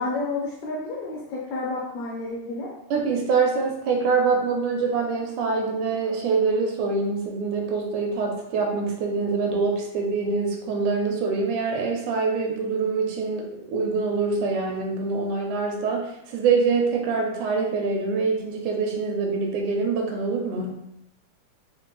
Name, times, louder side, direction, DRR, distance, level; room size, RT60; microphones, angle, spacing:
voice 1, 0.0-2.7, left 3 dB, 75° left, -3 dB, 1.7 m, -30 dB
voice 2, 2.9-20.7, right 4 dB, 80° right, 1 dB, 2.0 m, -25 dB
5.8 x 2.1 x 3.1 m, 0.82 s
omnidirectional pair, 3.7 m